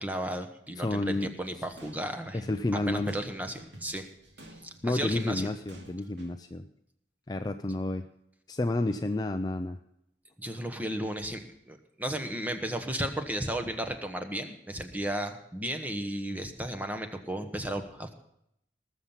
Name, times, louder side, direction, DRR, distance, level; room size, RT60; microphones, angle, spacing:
voice 1, 0.0-2.4 2.9-4.1 4.6-5.5 10.4-18.1, right 1 dB, 10° right, 6 dB, 1.1 m, -34 dB
voice 2, 0.8-1.3 2.3-3.2 4.8-6.7 7.3-8.0 8.5-9.8, left 2 dB, 20° left, 7 dB, 0.4 m, -30 dB
sound 1, 1.1-6.3, right 1 dB, 90° right, 2.5 m, -50 dB
19.0 x 7.1 x 5.8 m, 0.78 s
head